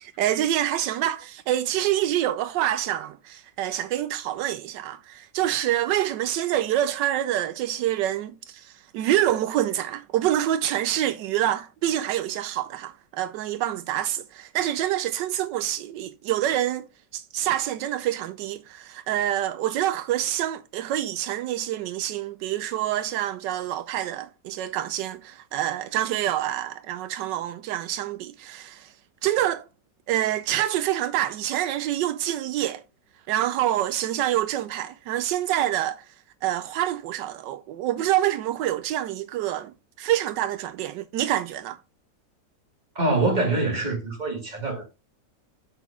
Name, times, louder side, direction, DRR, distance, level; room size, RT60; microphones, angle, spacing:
voice 1, 0.0-16.9 17.1-28.9 29.2-29.6 30.1-32.8 33.3-36.0 36.4-41.8, right 12 dB, 85° right, 1.2 m, -26 dB
voice 2, 42.9-44.8, right 2 dB, 25° right, 2.8 m, -24 dB
7.3 x 6.0 x 3.6 m
omnidirectional pair, 1.9 m